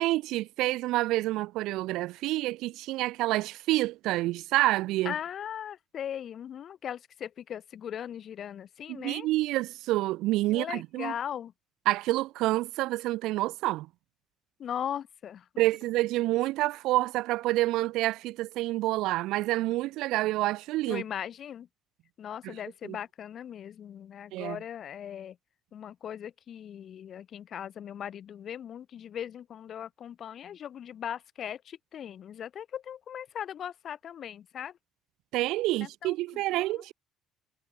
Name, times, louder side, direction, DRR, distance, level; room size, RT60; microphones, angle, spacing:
voice 1, 0.0-5.1 8.9-11.1 11.8-13.9 15.6-21.0 22.4-22.6 22.8-23.0 24.3-24.6 35.3-36.9, right 17 dB, 80° right, 1.0 m, -28 dB
voice 2, 5.0-9.3 10.5-11.5 14.6-15.4 20.9-21.7 22.2-25.4 25.7-34.7 35.8-36.1 36.5-36.7, left 9 dB, 45° left, 6.8 m, -39 dB
cardioid pair, 135°, 0 cm